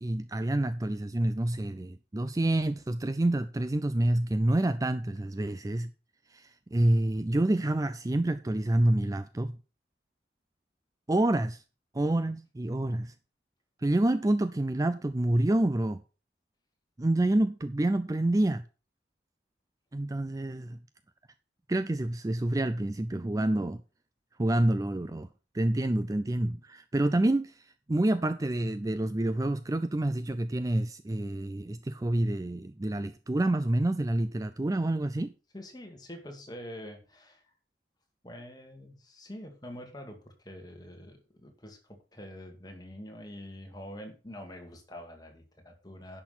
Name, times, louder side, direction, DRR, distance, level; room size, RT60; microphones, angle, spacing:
voice 1, 0.0-5.9 6.3-9.6 11.1-11.6 11.9-13.1 13.8-16.0 17.0-18.6 19.9-20.8 21.7-23.8 24.4-25.3 25.5-35.3, right 1 dB, 20° right, 0.4 m, -28 dB
voice 2, 35.5-37.5 38.2-46.2, equal, 20° left, 2.1 m, -45 dB
10.5 x 6.0 x 5.6 m
head